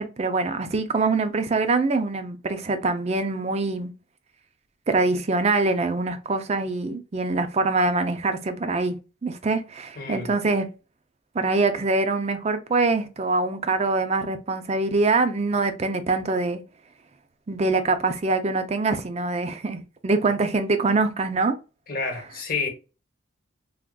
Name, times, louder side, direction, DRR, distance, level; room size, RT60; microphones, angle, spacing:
voice 1, 0.0-3.9 4.9-8.9 9.2-10.7 11.3-16.6 17.5-21.6, right 3 dB, 35° right, 0.4 m, -24 dB
voice 2, 10.0-10.3 21.9-22.7, left 4 dB, 50° left, 0.9 m, -29 dB
3.5 x 2.4 x 2.3 m
head